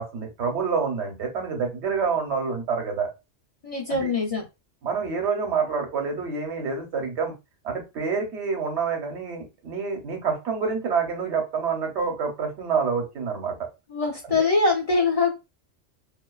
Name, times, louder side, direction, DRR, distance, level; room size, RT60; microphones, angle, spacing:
voice 1, 0.0-3.1 3.9-4.1 4.8-7.3 7.6-13.6 14.3-14.4, right 5 dB, 65° right, 2 dB, 1.1 m, -27 dB
voice 2, 3.6-4.4 13.9-15.3, left 3 dB, 55° left, -1 dB, 0.4 m, -23 dB
2.4 x 2.2 x 2.2 m, 0.25 s
omnidirectional pair, 1.3 m